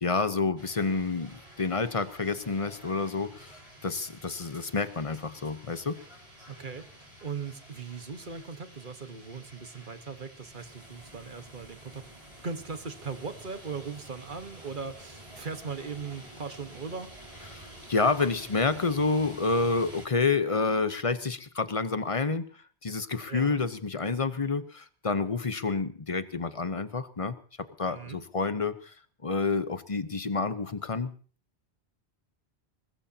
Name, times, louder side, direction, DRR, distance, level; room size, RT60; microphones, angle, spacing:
voice 1, 0.0-6.0 17.5-22.5 22.8-27.3 27.8-28.9 29.2-31.1, left 4 dB, 35° left, 12 dB, 1.0 m, -29 dB
sound 1, 0.6-20.1, right 1 dB, 30° right, 5.3 m, -50 dB
voice 2, 6.5-6.9 7.2-12.0 12.4-17.1 23.3-23.6 27.9-28.2, right 5 dB, 50° right, 9 dB, 1.5 m, -39 dB
21.0 x 21.0 x 2.9 m, 0.41 s
omnidirectional pair, 1.1 m